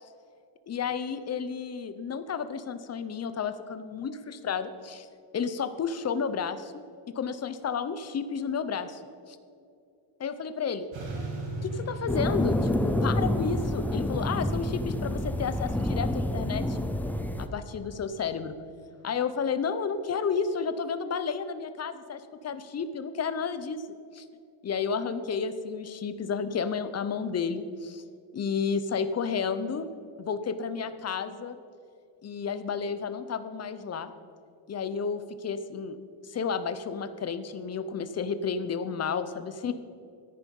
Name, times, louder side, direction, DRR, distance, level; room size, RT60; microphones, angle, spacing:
voice 1, 0.7-5.1 5.3-6.7 7.1-9.0 9.3-9.4 10.2-10.9 11.6-16.8 17.4-18.5 19.0-23.8 24.1-24.2 24.6-28.0 28.3-29.9 30.2-31.6 32.2-34.1 34.7-36.0 36.2-39.7, left 6 dB, 30° left, 11 dB, 0.7 m, -31 dB
sound 1, 10.9-18.0, right 2 dB, 65° right, 3.3 m, -41 dB
sound 2, 12.1-17.5, left 1 dB, 5° left, 0.4 m, -28 dB
14.0 x 10.5 x 5.4 m, 2.4 s
cardioid pair, 155°, 50 cm